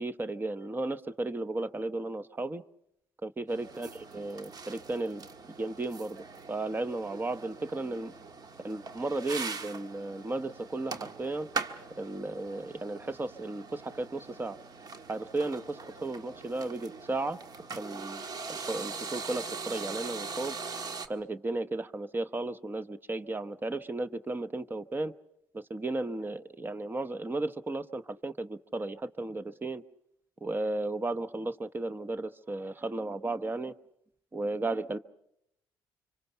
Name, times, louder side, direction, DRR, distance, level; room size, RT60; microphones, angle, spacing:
voice 1, 0.0-2.6 3.2-5.3 5.6-8.1 8.6-11.5 12.0-14.6 15.1-17.4 17.8-18.2 18.5-20.5 21.1-25.1 25.5-29.8 30.4-33.7 34.3-35.0, right 2 dB, 20° right, 12 dB, 1.0 m, -34 dB
sound 1, 3.5-21.1, right 4 dB, 45° right, 1.5 m, -42 dB
25.5 x 25.5 x 5.7 m, 0.77 s
cardioid pair, 90°, 9 cm